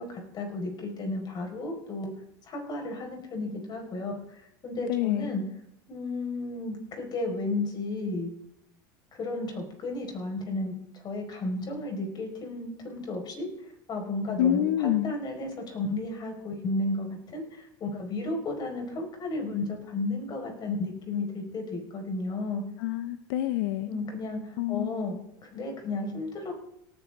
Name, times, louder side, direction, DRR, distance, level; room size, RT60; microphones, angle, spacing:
voice 1, 0.0-2.1 2.4-5.4 5.9-8.3 9.1-22.6 23.8-25.1 25.4-26.6, left 2 dB, 40° left, 2 dB, 4.9 m, -33 dB
voice 2, 4.9-5.3 14.4-15.1 22.8-23.9 24.6-24.9, left 12 dB, 80° left, 12 dB, 0.6 m, -27 dB
18.0 x 10.0 x 3.7 m, 0.78 s
supercardioid pair, 100°, 11 cm